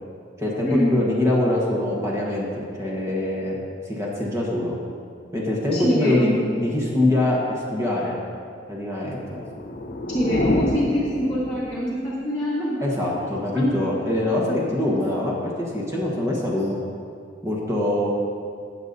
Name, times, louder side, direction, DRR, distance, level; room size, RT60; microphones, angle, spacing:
voice 1, 0.4-3.5 3.8-4.8 5.3-8.2 8.7-9.4 12.8-16.8 17.4-18.1, left 1 dB, 15° right, -4 dB, 1.3 m, -24 dB
voice 2, 5.7-6.3 10.1-12.8 13.2-13.9 14.8-15.1, equal, 5° left, -9 dB, 1.5 m, -25 dB
sound 1, 9.3-12.0, left 1 dB, 50° left, 0.6 m, -26 dB
18.0 x 6.7 x 2.7 m, 2.3 s
head